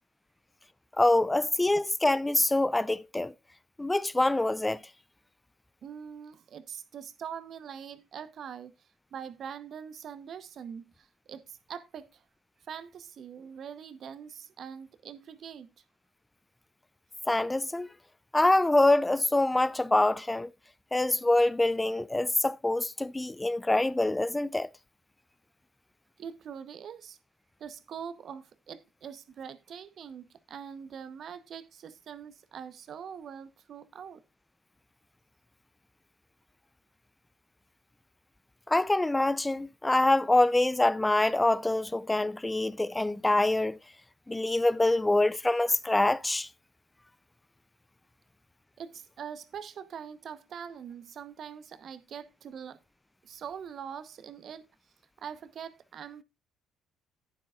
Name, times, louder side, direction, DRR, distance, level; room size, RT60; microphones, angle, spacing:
voice 1, 1.0-3.3 3.8-4.8 17.3-17.9 18.3-20.5 20.9-24.7 38.7-43.8 44.3-46.5, left 2 dB, 15° left, 0.5 m, -25 dB
voice 2, 5.8-8.7 9.1-12.2 12.7-15.7 26.2-27.2 27.6-34.2 48.8-52.8 53.2-54.7 55.2-56.2, right 7 dB, 55° right, 0.9 m, -43 dB
11.0 x 9.4 x 2.4 m
supercardioid pair, 70°, 0 cm